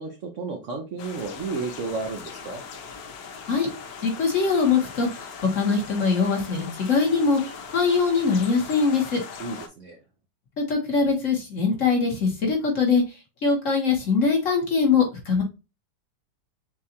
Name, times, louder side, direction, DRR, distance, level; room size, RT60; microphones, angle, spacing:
voice 1, 0.0-2.6 9.4-10.0, right 4 dB, 60° right, 2 dB, 0.8 m, -32 dB
sound 1, 1.0-9.7, left 6 dB, 65° left, 1.0 m, -40 dB
voice 2, 4.0-5.3 5.5-9.2 10.6-13.0 13.4-15.4, left 5 dB, 50° left, 1 dB, 1.3 m, -22 dB
6.4 x 2.4 x 2.8 m, 0.29 s
omnidirectional pair, 2.0 m